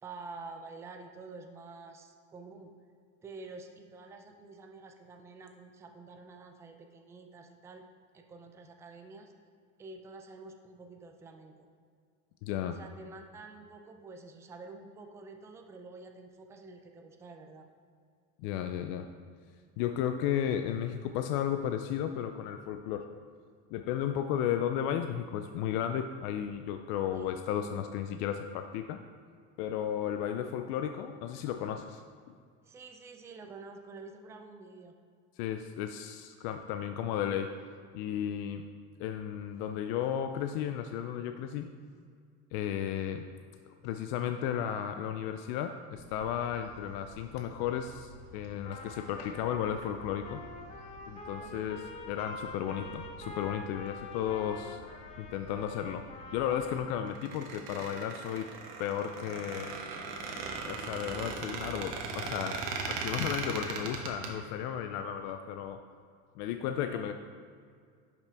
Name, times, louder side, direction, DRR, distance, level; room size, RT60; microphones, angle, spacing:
voice 1, 0.0-2.7 3.2-7.9 8.1-9.3 9.8-11.6 12.7-17.7 27.1-27.3 32.6-34.9 42.6-42.8 51.4-51.7 59.9-60.5 66.8-67.1, right 3 dB, 10° right, 4 dB, 0.3 m, -49 dB
voice 2, 12.4-12.8 18.4-19.1 19.8-23.1 23.7-29.0 29.6-32.0 35.4-37.5 37.9-38.6 39.0-41.7 42.5-43.2 43.8-50.4 51.1-54.8 55.2-56.1 56.3-58.5 58.8-59.7 60.6-65.8 66.4-67.1, left 9 dB, 65° left, 7 dB, 0.4 m, -34 dB
sound 1, 45.9-56.8, right 2 dB, 55° right, 1.2 m, -53 dB
Trumpet, 48.6-57.2, left 2 dB, 20° left, 0.7 m, -46 dB
Squeak, 57.1-64.3, right 4 dB, 80° right, 1.3 m, -38 dB
10.5 x 5.8 x 3.4 m, 2.2 s
cardioid pair, 170°, 30 cm